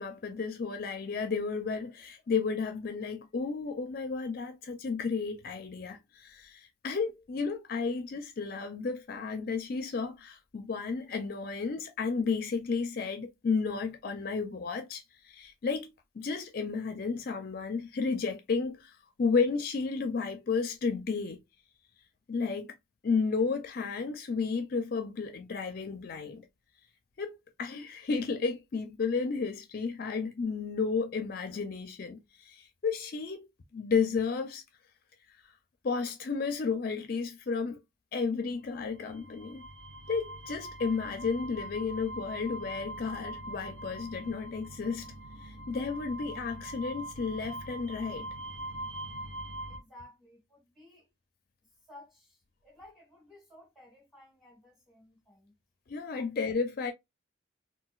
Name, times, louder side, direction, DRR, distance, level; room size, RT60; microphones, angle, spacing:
voice 1, 0.0-21.4 22.3-22.7 23.0-26.4 27.2-34.6 35.8-37.8 38.1-39.7 40.1-45.1 45.4-48.3 55.9-56.9, left 5 dB, 50° left, 0.4 m, -32 dB
sound 1, 38.7-49.8, right 1 dB, 65° right, 0.6 m, -42 dB
voice 2, 49.7-51.1 51.9-55.5, left 1 dB, ahead, 1.4 m, -55 dB
3.8 x 2.2 x 2.3 m
head